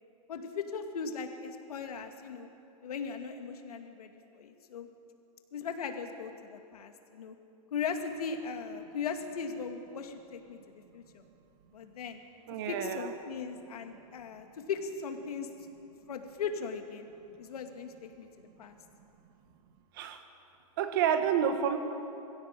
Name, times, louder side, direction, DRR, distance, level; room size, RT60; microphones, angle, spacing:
voice 1, 0.3-2.5 2.8-4.9 5.5-7.4 7.7-10.6 10.9-11.2 11.7-12.2 12.7-15.5 16.1-17.1 17.4-18.3 18.6-18.8, left 5 dB, 70° left, 5 dB, 2.4 m, -38 dB
voice 2, 12.5-13.1 19.9-20.2 20.8-21.8, right 8 dB, 35° right, 7 dB, 1.5 m, -29 dB
23.5 x 16.5 x 7.6 m, 2.8 s
hypercardioid pair, 175°, 20 cm